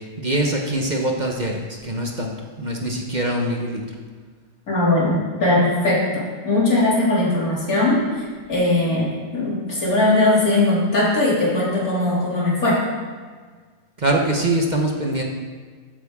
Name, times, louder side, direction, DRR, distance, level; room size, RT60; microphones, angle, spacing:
voice 1, 0.2-3.8 14.0-15.2, right 1 dB, 35° right, 0 dB, 1.1 m, -23 dB
voice 2, 4.7-12.8, left 2 dB, 80° left, -5 dB, 3.4 m, -20 dB
14.0 x 8.7 x 3.7 m, 1.5 s
omnidirectional pair, 1.5 m